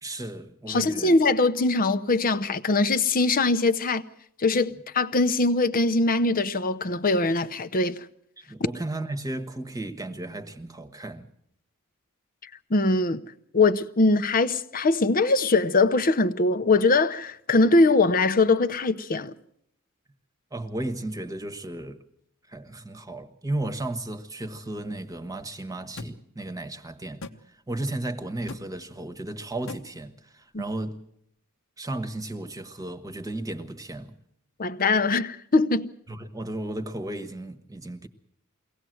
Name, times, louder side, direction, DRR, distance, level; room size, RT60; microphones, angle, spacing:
voice 1, 0.0-1.2 8.4-11.3 20.5-22.0 22.5-27.2 27.7-31.0 31.8-34.1 36.1-38.1, right 1 dB, 15° right, 1.3 m, -34 dB
voice 2, 0.7-4.0 4.4-8.0 12.7-13.2 13.5-19.3 30.5-30.6 34.6-35.9, left 3 dB, 40° left, 0.8 m, -22 dB
sound 1, 26.0-26.1 27.2-27.4 28.5-28.7 29.7-29.8, left 3 dB, 65° left, 1.1 m, -37 dB
23.0 x 17.5 x 7.8 m
head